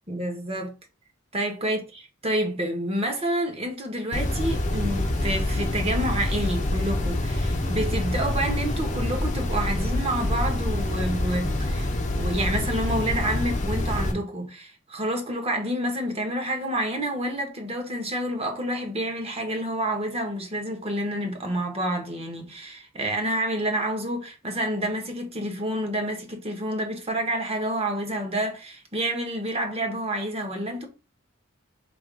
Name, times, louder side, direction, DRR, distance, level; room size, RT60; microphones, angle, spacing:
voice 1, 0.1-0.7 1.3-1.8 2.2-30.9, right 1 dB, 30° right, 1.2 m, -28 dB
sound 1, 4.1-14.1, left 1 dB, 35° left, 1.0 m, -26 dB
3.5 x 3.1 x 4.7 m
head